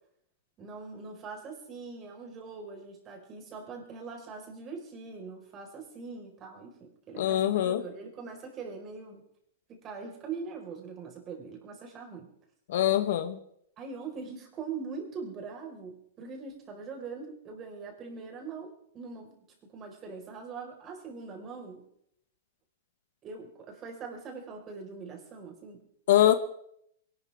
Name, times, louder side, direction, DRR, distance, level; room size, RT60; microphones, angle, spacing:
voice 1, 0.6-9.2 9.7-12.3 13.8-19.4 19.7-21.8 23.2-25.8, right 5 dB, 30° right, 2 dB, 4.9 m, -42 dB
voice 2, 7.2-7.8 12.7-13.4 26.1-26.3, left 12 dB, 65° left, 10 dB, 1.2 m, -23 dB
23.0 x 12.0 x 3.6 m, 0.70 s
hypercardioid pair, 115°, 0 cm